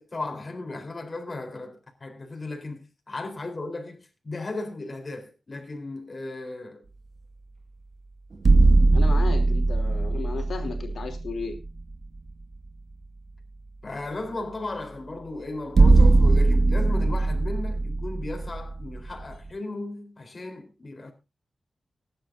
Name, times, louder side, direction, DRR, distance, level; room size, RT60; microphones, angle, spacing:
voice 1, 0.0-6.8 13.8-21.1, left 2 dB, 35° left, 4.0 m, -36 dB
sound 1, 8.3-11.9 12.3-12.4 15.7-19.3, right 3 dB, 65° right, 1.9 m, -20 dB
voice 2, 8.9-11.6, left 4 dB, 85° left, 3.2 m, -34 dB
21.0 x 10.5 x 2.7 m
wide cardioid pair, 120°, 0 cm